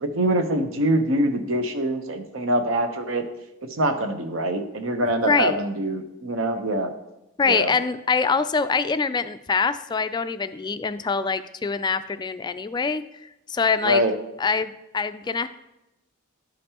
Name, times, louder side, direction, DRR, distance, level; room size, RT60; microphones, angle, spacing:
voice 1, 0.0-3.3 3.8-6.9 7.5-7.7 13.8-14.1, right 1 dB, 70° right, 7 dB, 0.9 m, -24 dB
voice 2, 5.3-5.6 7.4-14.0 14.4-15.5, left 5 dB, 20° left, 11 dB, 0.3 m, -24 dB
12.0 x 5.2 x 2.9 m, 0.91 s
head